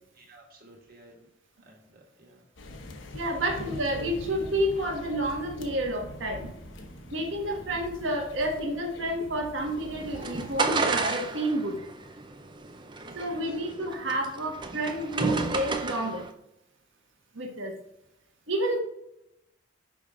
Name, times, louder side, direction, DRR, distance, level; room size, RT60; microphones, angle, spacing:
voice 1, 0.1-1.3 1.6-2.4 3.1-3.6 12.7-13.5, right 1 dB, 45° right, -1 dB, 1.8 m, -55 dB
sound 1, 2.6-10.6, left 1 dB, 70° left, 0.9 m, -43 dB
voice 2, 3.1-6.5 6.9-11.8 13.1-16.3 17.3-17.7 18.5-18.8, right 1 dB, 70° right, 2 dB, 1.4 m, -30 dB
sound 2, 9.6-16.3, right 3 dB, 25° right, 0.5 m, -32 dB
6.1 x 5.2 x 3.7 m, 0.84 s
head